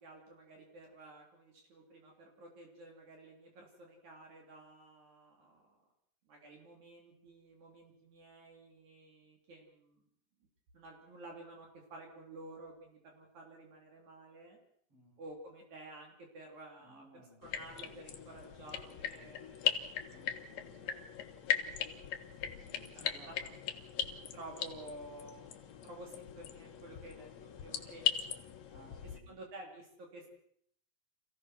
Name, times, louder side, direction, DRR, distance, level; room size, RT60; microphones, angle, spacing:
voice 1, 0.0-5.8 6.2-10.0 10.7-14.6 15.2-19.7 21.8-23.4 24.3-28.1 29.0-30.3, right 2 dB, 55° right, 1 dB, 4.5 m, -52 dB
voice 2, 14.9-15.2 16.8-17.4 20.1-21.2 22.5-23.5 28.7-29.4, right 1 dB, 40° right, -1 dB, 7.6 m, -60 dB
sound 1, 17.4-29.2, left 9 dB, 60° left, 2.3 m, -39 dB
27.0 x 16.5 x 6.2 m, 0.66 s
omnidirectional pair, 4.0 m